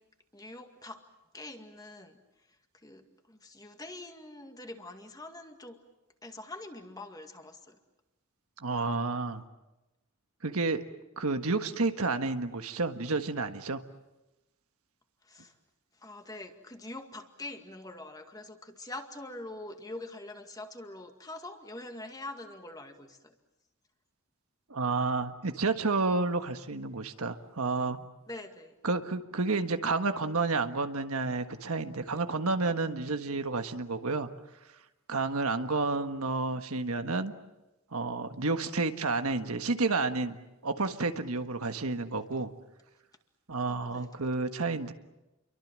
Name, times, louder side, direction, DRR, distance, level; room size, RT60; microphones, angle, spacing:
voice 1, 0.3-1.0 1.3-2.2 2.8-5.8 6.2-7.8 15.3-15.5 16.0-23.3 28.3-28.8 43.7-44.1, left 2 dB, 15° left, 5 dB, 2.1 m, -44 dB
voice 2, 8.6-9.4 10.4-10.8 11.2-13.8 24.7-28.0 28.8-34.3 35.1-37.3 37.9-40.4 40.6-42.5 43.5-44.9, right 3 dB, 85° right, 7 dB, 1.5 m, -30 dB
29.5 x 23.5 x 7.6 m, 0.99 s
head